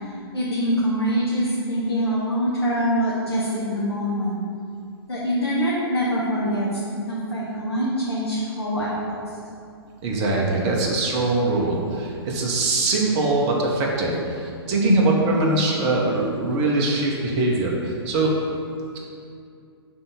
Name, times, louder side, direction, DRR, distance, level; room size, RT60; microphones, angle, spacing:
voice 1, 0.0-4.5 5.1-6.8 7.1-9.4 14.9-15.0, equal, 70° left, -7 dB, 1.1 m, -24 dB
voice 2, 10.0-18.3, right 2 dB, 30° right, -2 dB, 0.9 m, -22 dB
5.5 x 3.4 x 5.6 m, 2.4 s
figure-of-eight pair, 115°, 14 cm